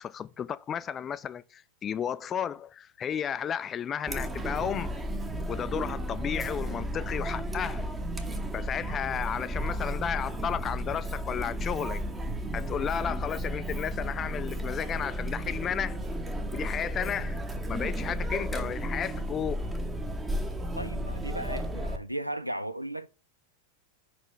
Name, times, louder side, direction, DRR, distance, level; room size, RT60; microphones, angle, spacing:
voice 1, 0.0-4.9 5.5-7.9 8.5-12.0 12.5-16.0 16.5-17.4 17.7-19.7, left 8 dB, 25° left, 0.4 m, -33 dB
Chatter, 4.1-22.0, equal, 10° right, 0.8 m, -33 dB
voice 2, 20.8-23.1, right 1 dB, 90° right, 0.4 m, -36 dB
5.1 x 4.3 x 4.4 m
figure-of-eight pair, 90°, 0 cm